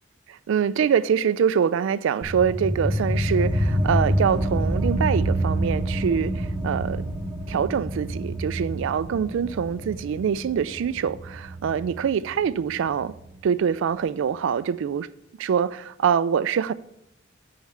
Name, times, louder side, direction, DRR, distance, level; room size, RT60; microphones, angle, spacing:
voice 1, 0.3-7.0 7.5-13.1 13.4-15.1 15.4-16.7, right 7 dB, 65° right, 0.3 m, -24 dB
sound 1, 2.2-13.3, right 1 dB, 5° right, 0.8 m, -27 dB
6.3 x 4.8 x 6.5 m
head